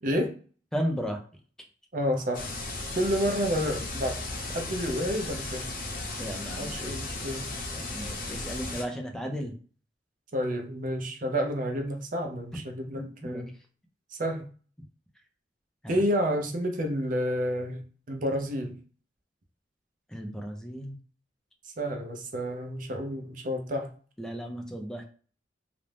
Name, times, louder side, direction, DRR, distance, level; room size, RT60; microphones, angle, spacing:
voice 1, 0.7-1.2 6.2-6.9 7.7-9.5 12.9-13.4 15.8-16.0 20.1-21.0 24.2-25.0, equal, 5° left, 3 dB, 0.4 m, -35 dB
voice 2, 1.9-2.4 3.0-4.2 4.5-5.7 6.6-7.5 10.3-13.5 14.1-14.4 15.9-17.8 18.1-18.8 21.6-23.9, equal, 50° right, 4 dB, 0.5 m, -30 dB
sound 1, 2.3-8.8, left 2 dB, 55° left, 0.6 m, -36 dB
2.5 x 2.0 x 3.2 m, 0.41 s
head